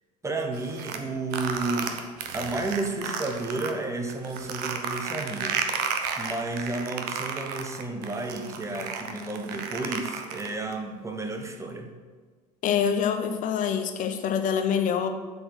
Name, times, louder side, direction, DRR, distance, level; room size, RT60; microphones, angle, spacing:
voice 1, 0.2-2.0 2.3-5.6 6.2-11.9, right 2 dB, 15° right, 3 dB, 1.0 m, -32 dB
sound 1, 0.5-3.7 4.1-10.7, right 7 dB, 50° right, 0.9 m, -32 dB
voice 2, 12.6-15.1, left 7 dB, 40° left, 7 dB, 0.9 m, -25 dB
7.8 x 4.5 x 6.4 m, 1.5 s
figure-of-eight pair, 65°, 21 cm